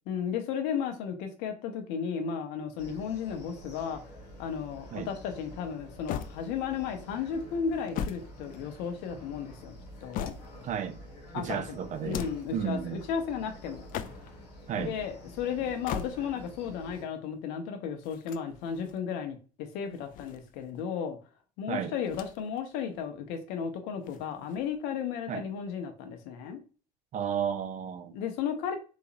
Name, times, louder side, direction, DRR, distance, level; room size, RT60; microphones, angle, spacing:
voice 1, 0.1-4.0 4.4-9.7 10.0-10.3 11.3-11.8 12.0-13.9 14.8-21.2 21.6-26.6 28.1-28.7, left 7 dB, 60° left, 0.7 m, -34 dB
sound 1, 2.8-17.0, equal, 85° left, 1.0 m, -48 dB
sound 2, 6.1-6.9 7.7-9.1 9.7-10.8 11.9-12.6 13.7-14.5 15.6-16.5 18.0-19.0 19.9-20.8 22.0-22.6 22.9-23.0 24.0-24.8, left 8 dB, 45° left, 0.4 m, -39 dB
voice 2, 10.6-11.0 11.3-12.2 12.5-13.0 14.7-15.0 21.7-21.9 25.3-25.4 27.1-28.2, right 8 dB, 40° right, 0.4 m, -33 dB
4.0 x 2.8 x 2.5 m
figure-of-eight pair, 60°, 20 cm